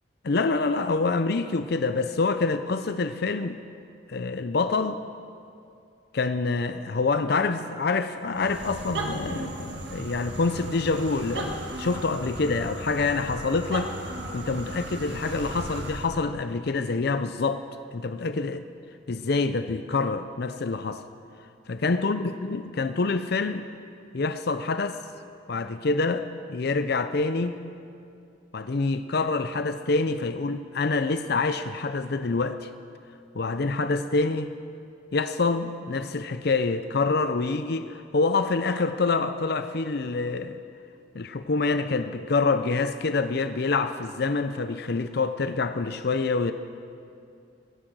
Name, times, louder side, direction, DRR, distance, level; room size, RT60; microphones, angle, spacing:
voice 1, 0.2-3.6 4.1-5.1 6.1-14.0 14.3-17.6 17.9-18.6 19.1-21.1 21.7-23.7 24.1-25.0 25.5-27.6 28.5-32.7 33.3-34.5 35.1-40.6 41.1-46.5, left 3 dB, 55° left, 10 dB, 0.6 m, -26 dB
sound 1, 8.3-16.2, right 2 dB, 65° right, 1.8 m, -36 dB
22.5 x 10.5 x 6.2 m, 2.4 s
head